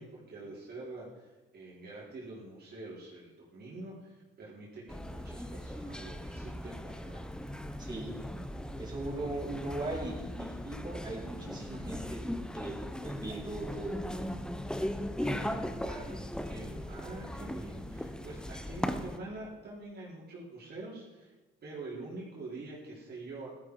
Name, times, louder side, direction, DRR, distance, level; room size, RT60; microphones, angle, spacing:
voice 1, 0.0-7.2 15.2-21.3 21.6-23.6, right 2 dB, 55° right, -6 dB, 4.6 m, -45 dB
sound 1, 4.9-19.2, equal, 5° left, 1.1 m, -38 dB
voice 2, 7.8-8.1 8.8-12.2 12.5-14.0, right 2 dB, 20° right, -3 dB, 6.1 m, -39 dB
16.0 x 13.0 x 5.0 m, 1.2 s
cardioid pair, 90°, 20 cm